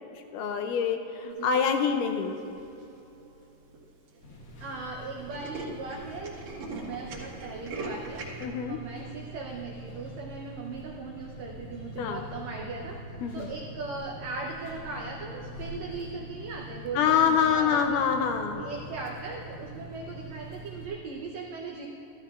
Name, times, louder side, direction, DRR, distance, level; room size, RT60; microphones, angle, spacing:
voice 1, 0.3-2.4 8.4-8.8 12.0-12.2 13.2-13.5 17.0-18.6, left 7 dB, 80° left, 5 dB, 1.9 m, -26 dB
Tools, 2.4-2.8 3.4-3.5 3.7-3.8 4.1-4.3 4.6-4.7 5.0-8.4, right 3 dB, 60° right, 2.7 m, -40 dB
sound 1, 4.2-20.9, right 1 dB, 55° left, 2.1 m, -44 dB
voice 2, 4.6-18.0 18.5-21.9, right 3 dB, 85° right, 0 dB, 1.5 m, -39 dB
14.5 x 14.0 x 2.4 m, 3.0 s
omnidirectional pair, 4.1 m